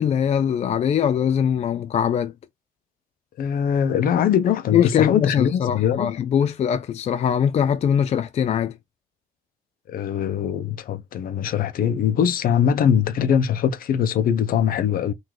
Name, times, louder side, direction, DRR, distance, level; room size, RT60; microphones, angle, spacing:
voice 1, 0.0-2.3 4.7-8.8, left 8 dB, 40° left, 0.4 m, -21 dB
voice 2, 3.4-6.1 9.9-15.1, left 8 dB, 60° left, 0.8 m, -22 dB
3.9 x 2.8 x 4.7 m
cardioid pair, 110°, 17 cm